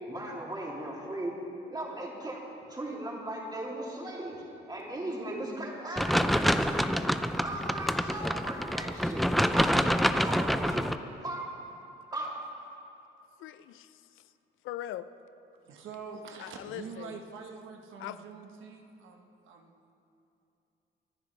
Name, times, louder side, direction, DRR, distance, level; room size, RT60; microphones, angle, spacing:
voice 1, 0.1-1.4 1.7-7.1 7.4-10.8 11.2-11.4 12.1-12.4, right 1 dB, 20° right, -3 dB, 2.9 m, -37 dB
sound 1, 6.0-11.0, equal, ahead, 0.4 m, -27 dB
voice 2, 13.4-13.9 14.6-15.1 16.4-17.1 18.0-18.2, left 13 dB, 85° left, 13 dB, 0.5 m, -40 dB
voice 3, 15.6-19.9, right 5 dB, 80° right, 3 dB, 1.2 m, -45 dB
24.5 x 10.5 x 3.3 m, 2.8 s
cardioid pair, 90°, 20 cm